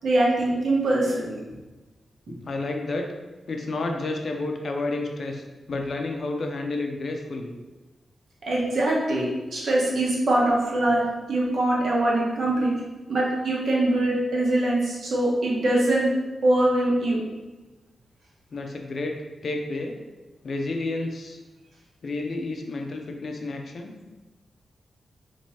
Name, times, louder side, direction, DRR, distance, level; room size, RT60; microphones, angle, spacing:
voice 1, 0.0-1.4 8.5-11.0 11.3-12.7 13.1-16.1 16.4-17.2, right 1 dB, 70° right, -4 dB, 1.0 m, -23 dB
voice 2, 2.3-3.0 3.5-7.6 18.5-20.0 20.4-21.4 22.0-24.0, left 2 dB, 55° left, 3 dB, 0.5 m, -30 dB
2.9 x 2.6 x 4.3 m, 1.2 s
wide cardioid pair, 120°, 0 cm